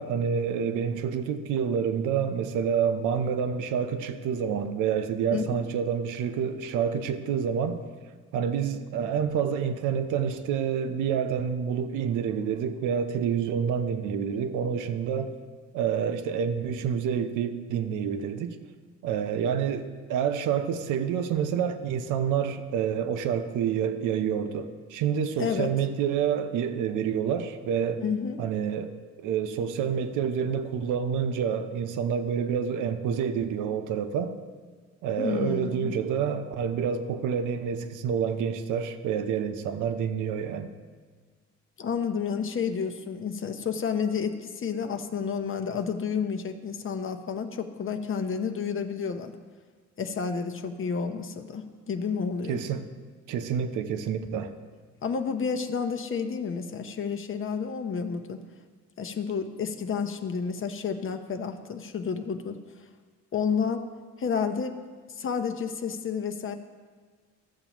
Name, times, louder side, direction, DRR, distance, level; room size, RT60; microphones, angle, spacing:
voice 1, 0.0-7.8 8.3-15.3 15.7-18.6 19.0-28.0 28.4-28.9 29.2-34.4 35.0-40.7 52.5-52.8 53.3-54.5, right 7 dB, 90° right, 8 dB, 0.6 m, -28 dB
voice 2, 25.4-25.7 28.0-28.4 35.2-35.9 41.8-49.3 50.0-52.6 55.0-58.4 59.0-62.6 63.3-63.8 64.2-64.7 65.1-66.6, left 6 dB, 45° left, 7 dB, 0.7 m, -30 dB
14.0 x 7.0 x 3.0 m, 1.5 s
cardioid pair, 90°, 30 cm